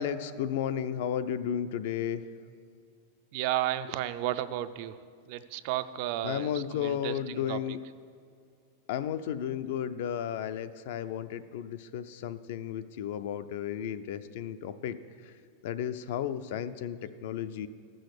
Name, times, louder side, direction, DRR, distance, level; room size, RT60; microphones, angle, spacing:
voice 1, 0.0-2.2 6.2-7.8 8.9-15.0 15.2-15.3 15.6-17.7, left 9 dB, 60° left, 12 dB, 0.5 m, -33 dB
voice 2, 3.3-5.0 5.3-7.8, right 13 dB, 45° right, 12 dB, 0.4 m, -33 dB
13.5 x 6.3 x 6.6 m, 2.3 s
supercardioid pair, 165°, 0 cm